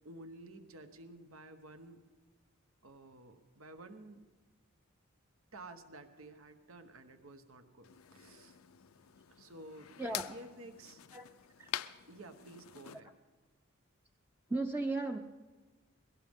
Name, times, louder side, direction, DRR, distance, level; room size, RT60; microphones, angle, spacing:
voice 1, 0.0-2.0 2.8-4.2 5.5-8.6 9.4-11.0 12.1-13.2, right 2 dB, 85° right, 8 dB, 1.2 m, -52 dB
sound 1, 7.8-13.0, left 11 dB, 85° left, 0.5 m, -46 dB
voice 2, 10.0-10.3 11.1-11.2 11.6-11.7 14.5-15.2, right 2 dB, 10° right, 4 dB, 0.5 m, -35 dB
21.5 x 17.0 x 3.6 m, 1.3 s
head